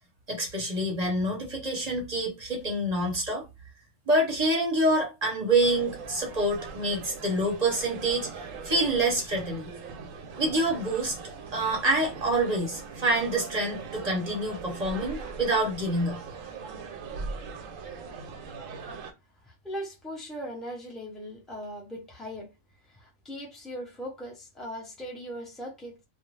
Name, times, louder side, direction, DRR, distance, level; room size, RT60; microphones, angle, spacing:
voice 1, 0.3-3.4 4.1-8.3 8.6-9.7 10.4-11.1 11.5-16.2, right 1 dB, 35° right, 0.9 m, -27 dB
sound 1, 5.6-19.1, right 4 dB, 85° right, 1.0 m, -40 dB
voice 2, 19.4-22.5 22.9-26.0, equal, ahead, 0.6 m, -39 dB
2.5 x 2.2 x 3.1 m
omnidirectional pair, 1.3 m